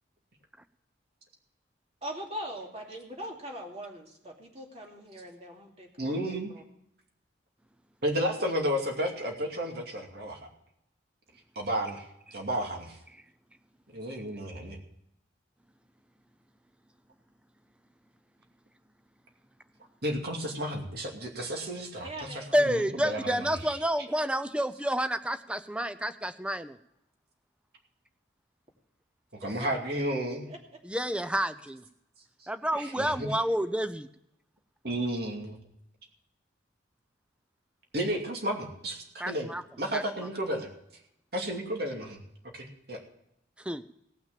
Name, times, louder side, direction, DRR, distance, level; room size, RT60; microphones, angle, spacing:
voice 1, 2.0-6.6 22.0-22.5 29.6-29.7 30.5-30.8, equal, 35° right, 0 dB, 2.7 m, -41 dB
voice 2, 6.0-6.5 8.0-10.5 11.6-12.0 12.3-13.0 13.9-14.8 20.0-22.4 23.0-23.4 29.3-30.5 32.7-33.3 34.8-35.6 37.9-39.5 39.8-40.7 41.3-42.2 42.5-43.0, equal, 55° right, 2 dB, 2.6 m, -32 dB
voice 3, 22.5-26.8 30.8-31.8 32.5-34.1 39.2-39.6 39.9-40.3 43.6-43.8, equal, 5° right, 12 dB, 0.6 m, -29 dB
17.5 x 6.1 x 7.6 m, 0.78 s
head